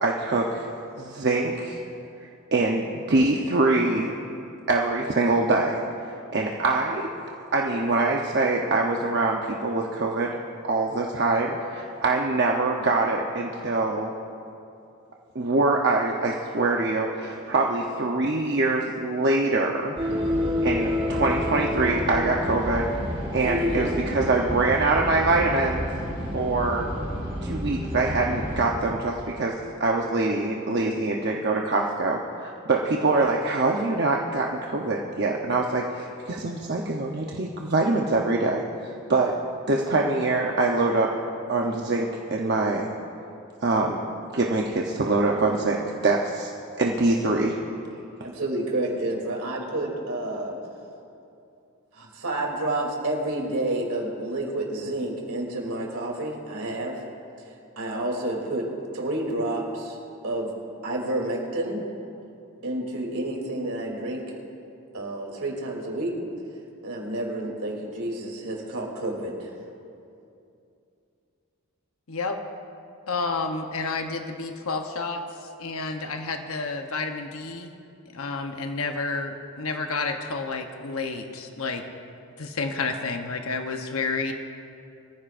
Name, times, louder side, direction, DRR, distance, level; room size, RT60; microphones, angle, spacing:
voice 1, 0.0-0.7 1.0-1.8 2.2-4.1 4.7-5.8 6.3-7.1 7.5-10.3 10.6-14.1 15.3-20.0 20.6-22.9 23.3-25.9 26.3-26.9 27.4-29.5 29.8-39.3 39.7-41.1 41.5-42.9 43.6-44.0 44.3-46.5 46.8-47.6, right 3 dB, 50° right, -1 dB, 0.8 m, -24 dB
sound 1, 20.0-28.7, left 1 dB, 25° right, 2.3 m, -29 dB
voice 2, 48.2-50.5 51.9-56.9 57.8-58.6 58.9-60.0 60.2-60.5 60.8-61.8 62.6-64.2 64.9-66.1 66.8-69.5, right 1 dB, 90° right, -1 dB, 3.0 m, -29 dB
voice 3, 73.1-75.2 75.6-77.7 78.1-81.8 82.4-84.3, left 4 dB, 80° left, 5 dB, 0.9 m, -30 dB
23.5 x 15.0 x 2.6 m, 2.6 s
head